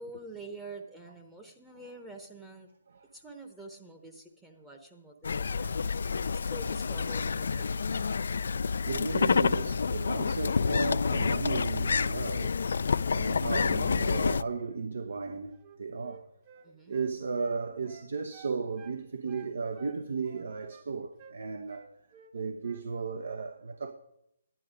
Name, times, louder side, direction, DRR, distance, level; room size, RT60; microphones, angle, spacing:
voice 1, 0.0-2.7 3.1-8.0 16.6-17.0, right 2 dB, 5° right, 0.8 m, -47 dB
sound 1, 5.2-14.4, left 5 dB, 70° left, 0.3 m, -28 dB
voice 2, 8.9-12.5 13.1-15.5 15.8-16.2 16.9-21.9 22.3-23.9, right 4 dB, 70° right, 0.7 m, -35 dB
Wind instrument woodwind instrument, 15.5-19.0 19.3-20.9 21.2-21.4 21.7-22.3 22.6-22.9, right 7 dB, 35° right, 1.0 m, -54 dB
11.0 x 10.0 x 5.0 m
hypercardioid pair, 150°, 0 cm